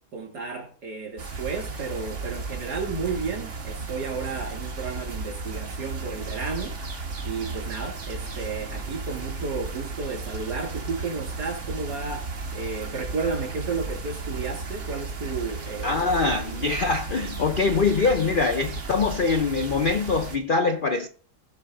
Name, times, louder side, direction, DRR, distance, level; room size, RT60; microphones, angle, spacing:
voice 1, 0.1-6.8 7.2-16.8, right 4 dB, 75° right, 3.3 m, -33 dB
sound 1, 1.2-20.4, right 3 dB, 45° right, 1.8 m, -34 dB
voice 2, 15.8-21.1, left 4 dB, 60° left, 0.5 m, -23 dB
16.0 x 5.7 x 3.8 m
omnidirectional pair, 1.8 m